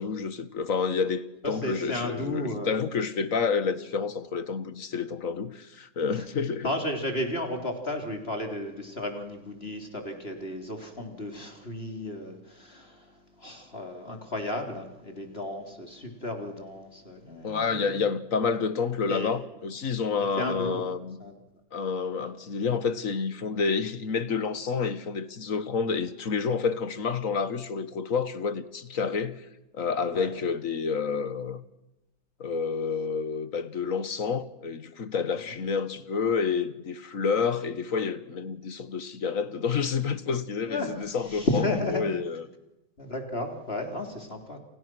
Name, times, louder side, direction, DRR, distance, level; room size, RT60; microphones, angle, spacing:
voice 1, 0.0-6.7 17.4-21.2 21.7-29.4 29.7-31.6 32.4-41.6 41.9-42.4, left 5 dB, 50° left, 1.8 m, -29 dB
voice 2, 1.4-3.1 6.1-6.3 6.6-18.1 19.1-19.3 20.2-21.4 22.2-22.3 30.1-30.3 40.7-42.1 43.0-44.6, left 1 dB, 35° left, 3.8 m, -33 dB
29.5 x 29.0 x 6.2 m
omnidirectional pair, 1.9 m